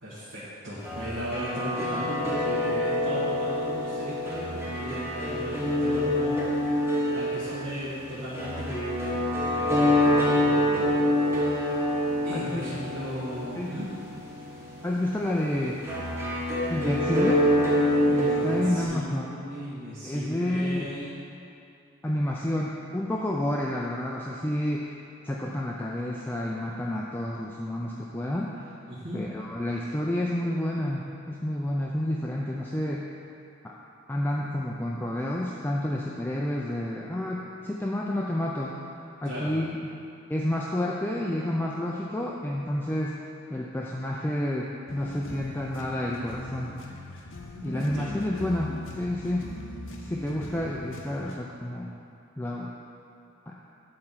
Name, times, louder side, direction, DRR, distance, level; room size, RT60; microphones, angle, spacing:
voice 1, 0.0-6.8 7.1-10.9 11.2-11.8 12.2-13.9 18.2-21.2 28.9-29.2 39.2-39.5 47.7-48.2, equal, 75° right, -10 dB, 1.6 m, -37 dB
sound 1, 0.8-18.8, left 1 dB, 10° right, 1.2 m, -26 dB
voice 2, 12.3-12.6 13.6-13.7 14.8-15.9 16.7-17.4 18.1-19.3 20.0-20.9 22.0-24.9 25.2-28.7 29.1-33.1 33.6-33.8 34.1-38.8 39.2-39.7 40.3-43.2 43.5-46.7 47.6-49.5 50.0-51.9 52.4-52.7 53.5-53.6, left 1 dB, 10° left, -3 dB, 0.3 m, -30 dB
sound 2, 44.9-51.4, left 1 dB, 75° left, 0.7 m, -40 dB
8.8 x 4.4 x 5.6 m, 2.6 s
head